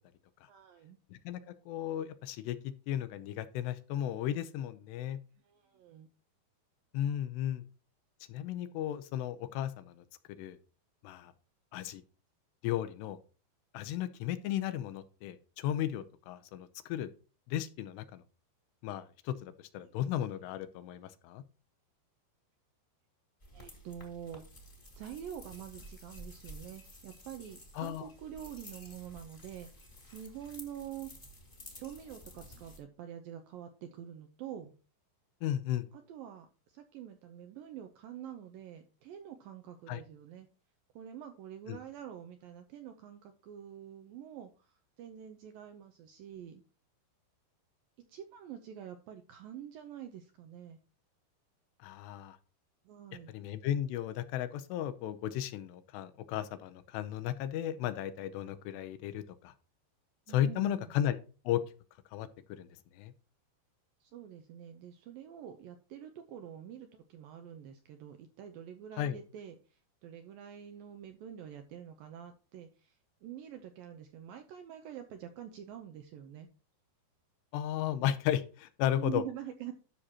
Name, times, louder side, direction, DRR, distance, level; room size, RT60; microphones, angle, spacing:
voice 1, 0.5-1.0 5.4-6.1 19.8-19.9 23.5-24.4 25.0-31.1 31.8-34.7 35.9-40.5 41.0-46.6 48.1-50.8 52.9-53.3 60.3-61.0 64.0-76.5 78.9-79.7, right 10 dB, 80° right, 7 dB, 2.1 m, -46 dB
voice 2, 1.1-5.2 6.9-7.6 8.3-10.0 10.4-10.6 11.0-11.3 11.7-12.0 12.6-13.2 13.7-17.1 17.5-18.2 18.8-21.4 27.8-28.1 35.4-35.8 39.9-40.0 41.7-41.8 51.8-52.4 53.3-59.5 60.3-61.2 61.5-61.6 62.1-62.7 62.9-63.1 69.0-69.2 77.5-79.2, left 11 dB, 80° left, 12 dB, 2.9 m, -35 dB
sound 1, 23.4-32.8, equal, 20° left, 1.4 m, -52 dB
12.5 x 6.4 x 2.9 m, 0.36 s
omnidirectional pair, 5.0 m